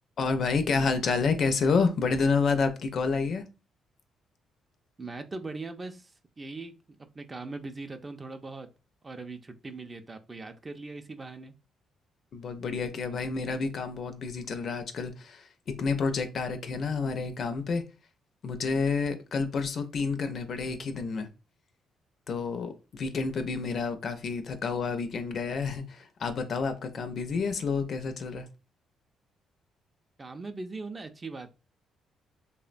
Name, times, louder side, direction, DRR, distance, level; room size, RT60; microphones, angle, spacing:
voice 1, 0.2-3.4 12.3-17.8 18.4-21.3 22.3-28.5, left 4 dB, 55° left, 0.4 m, -29 dB
voice 2, 5.0-6.7 7.1-8.7 9.0-11.5 30.2-31.5, right 3 dB, 25° right, 0.3 m, -40 dB
2.8 x 2.1 x 2.4 m
cardioid pair, 90°, 0 cm